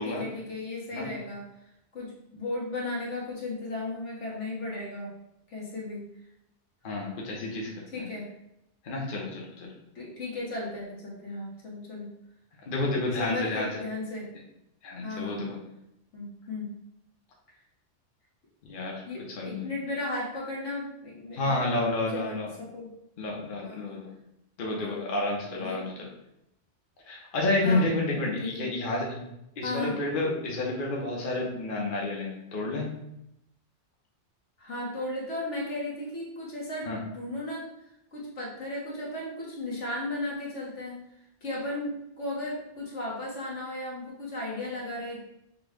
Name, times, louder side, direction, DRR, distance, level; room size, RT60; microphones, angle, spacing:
voice 1, 0.0-1.5 1.9-5.1 5.5-6.1 7.9-8.3 9.9-12.1 13.2-14.3 15.0-15.5 16.1-16.7 19.1-22.9 23.6-23.9 24.8-25.1 25.5-25.8 27.6-27.9 28.4-28.5 29.6-30.0 34.6-37.7 38.1-41.0 41.4-45.2, left 2 dB, 80° left, -4 dB, 1.6 m, -35 dB
voice 2, 6.8-7.7 8.0-8.1 8.8-9.7 12.7-13.7 14.8-15.6 18.6-19.0 19.4-19.7 21.3-22.5 23.2-24.1 24.6-25.9 27.1-29.2 29.6-32.9 36.8-37.0, left 2 dB, 50° left, -2 dB, 1.0 m, -30 dB
5.9 x 2.3 x 3.5 m, 0.82 s
omnidirectional pair, 1.2 m